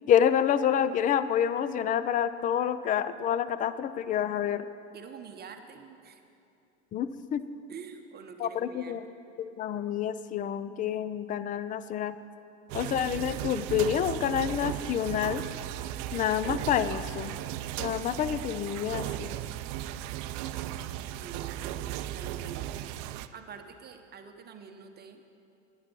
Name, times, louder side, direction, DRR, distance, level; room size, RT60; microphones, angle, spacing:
voice 1, 0.1-4.7 6.9-7.4 8.4-9.0 9.4-12.1 12.7-15.4 16.1-17.3 17.8-19.3, left 9 dB, 25° left, 14 dB, 0.3 m, -28 dB
voice 2, 4.9-6.2 7.7-9.0 21.1-22.9 23.3-25.2, right 6 dB, 25° right, 6 dB, 0.9 m, -46 dB
sound 1, 12.7-23.3, right 13 dB, 55° right, 0.5 m, -36 dB
11.5 x 9.7 x 5.3 m, 2.6 s
supercardioid pair, 110°, 36 cm